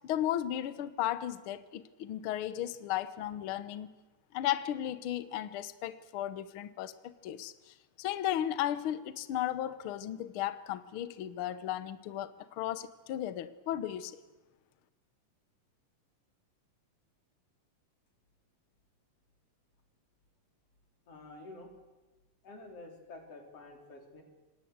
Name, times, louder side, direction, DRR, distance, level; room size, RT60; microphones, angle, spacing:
voice 1, 0.0-3.9 4.3-14.2, left 12 dB, 90° left, 1.1 m, -35 dB
voice 2, 21.1-21.7 22.4-24.2, left 2 dB, 45° left, 4.7 m, -49 dB
26.5 x 19.5 x 8.0 m
omnidirectional pair, 3.7 m